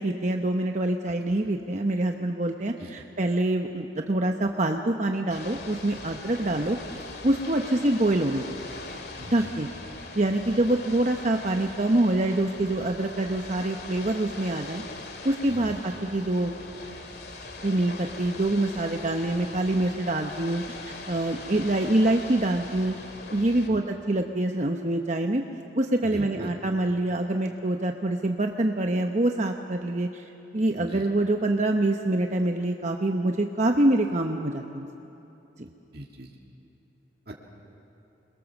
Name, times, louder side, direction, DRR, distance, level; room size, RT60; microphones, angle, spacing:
voice 1, 0.0-6.8 7.2-8.4 9.3-9.7 10.1-14.8 15.2-16.5 17.6-22.9 23.3-25.4 25.8-30.2 30.5-34.9, right 1 dB, 40° right, 4 dB, 0.9 m, -25 dB
Ocean / Boat Water vehicle, 5.3-23.7, left 3 dB, 60° left, 2.2 m, -41 dB
voice 2, 9.2-9.6 15.5-15.8 23.7-23.8 26.0-26.5 30.7-31.0 35.9-36.3 37.3-37.4, right 1 dB, 55° right, -1 dB, 2.1 m, -40 dB
29.0 x 22.0 x 7.2 m, 2.9 s
head